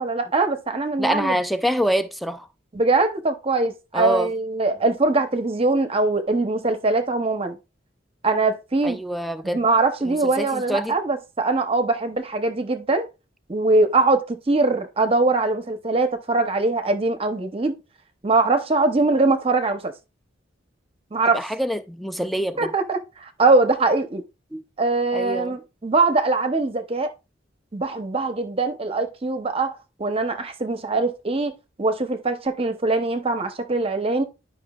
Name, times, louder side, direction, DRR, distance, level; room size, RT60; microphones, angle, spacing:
voice 1, 0.0-1.4 2.7-7.6 8.2-9.0 9.5-13.1 13.5-17.8 18.2-19.9 21.1-21.4 22.6-24.2 24.8-27.1 27.7-34.2, right 3 dB, 30° right, 0.8 m, -22 dB
voice 2, 1.0-2.5 3.9-4.3 8.8-9.7 10.0-10.9 21.3-22.7 24.5-24.6 25.1-25.6, equal, ahead, 0.4 m, -25 dB
10.5 x 5.4 x 2.4 m
head